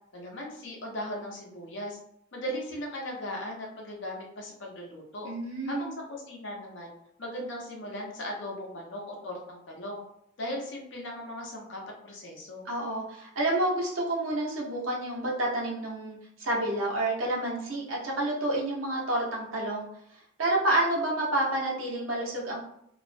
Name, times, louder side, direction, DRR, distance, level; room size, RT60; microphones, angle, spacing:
voice 1, 0.1-2.0 2.3-5.3 5.7-6.9 7.2-10.0 10.4-12.6, equal, 60° left, -1 dB, 0.7 m, -38 dB
voice 2, 5.2-5.9 12.6-19.9 20.4-22.6, right 1 dB, 85° right, -3 dB, 0.8 m, -29 dB
2.4 x 2.0 x 2.5 m, 0.75 s
head